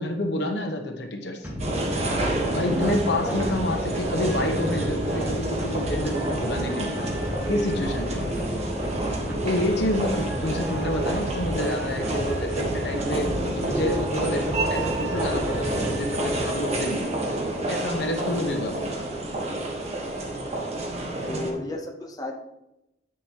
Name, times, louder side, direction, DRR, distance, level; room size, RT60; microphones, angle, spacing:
voice 1, 0.0-1.5 2.5-7.0 7.5-8.4 9.4-17.1 17.7-19.1, left 1 dB, 70° left, 3 dB, 1.2 m, -28 dB
sound 1, 1.4-16.5, equal, 10° right, 1.7 m, -33 dB
sound 2, 1.6-21.5, right 1 dB, 35° right, 1.3 m, -29 dB
voice 2, 21.3-22.3, left 2 dB, 20° left, 1 dB, 0.9 m, -33 dB
9.0 x 6.2 x 3.0 m, 0.88 s
head